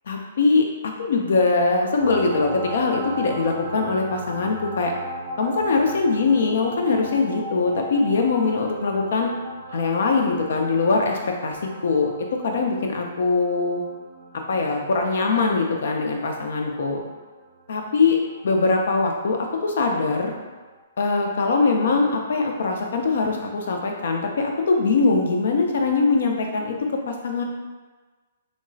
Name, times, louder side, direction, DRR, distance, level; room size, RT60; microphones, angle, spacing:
voice 1, 0.1-0.6 1.0-4.9 5.4-9.3 9.7-12.1 12.4-13.8 14.5-17.0 17.7-18.2 18.4-20.3 21.0-26.8 27.1-27.4, left 4 dB, 60° left, 2 dB, 0.4 m, -22 dB
sound 1, 2.0-19.2 20.8-20.9, right 2 dB, 35° right, 0.4 m, -38 dB
3.5 x 2.0 x 2.6 m, 1.3 s
figure-of-eight pair, 120°, 0 cm